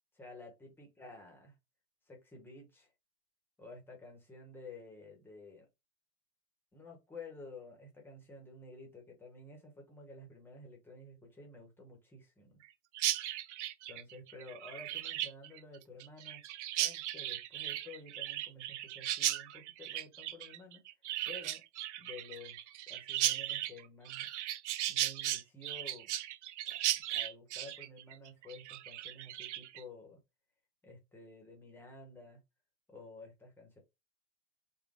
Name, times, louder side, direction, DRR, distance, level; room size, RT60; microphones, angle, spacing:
voice 1, 0.1-1.6 2.1-2.9 3.6-5.7 6.7-12.6 13.9-16.4 16.7-20.8 21.3-21.6 22.0-22.6 22.9-24.3 24.9-26.1 26.7-26.8 27.1-30.2 30.8-32.4 32.9-33.8, left 2 dB, 5° left, 0.8 m, -51 dB
Chirp tweet, 12.9-29.8, right 13 dB, 85° right, 0.5 m, -37 dB
3.7 x 2.2 x 3.6 m
supercardioid pair, 160°, 34 cm